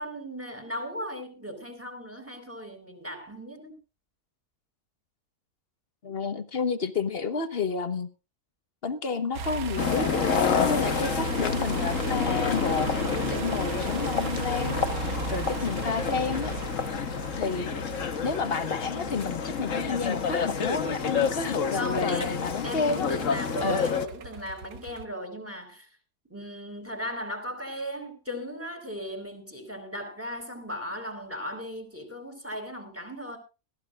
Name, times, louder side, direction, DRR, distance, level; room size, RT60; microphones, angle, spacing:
voice 1, 0.0-3.7 15.6-15.8 21.7-25.9 26.3-33.4, equal, 10° right, 4.3 m, -37 dB
voice 2, 6.0-8.1 8.8-16.5 17.4-17.7 18.2-23.1 23.6-23.9, left 4 dB, 40° left, 1.3 m, -31 dB
sound 1, 9.3-25.1, right 5 dB, 70° right, 1.5 m, -37 dB
sound 2, 9.8-24.1, left 6 dB, 60° left, 1.5 m, -29 dB
21.0 x 15.0 x 2.5 m
omnidirectional pair, 1.6 m